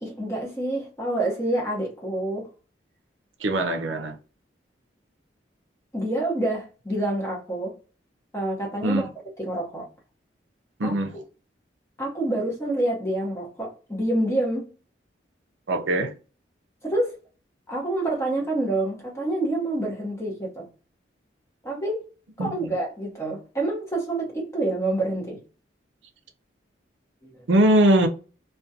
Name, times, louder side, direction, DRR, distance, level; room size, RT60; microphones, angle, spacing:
voice 1, 0.0-2.5 3.6-3.7 5.9-7.7 8.3-9.1 9.4-9.9 10.8-11.2 12.0-14.7 16.8-17.2 17.7-20.7 21.6-22.1 22.4-25.4 27.2-27.4, right 1 dB, 15° left, 0.8 m, -27 dB
voice 2, 3.4-4.2 8.8-9.1 10.8-11.1 15.7-16.1 22.4-22.7 27.5-28.1, right 1 dB, 85° right, 0.5 m, -21 dB
2.4 x 2.2 x 2.6 m
head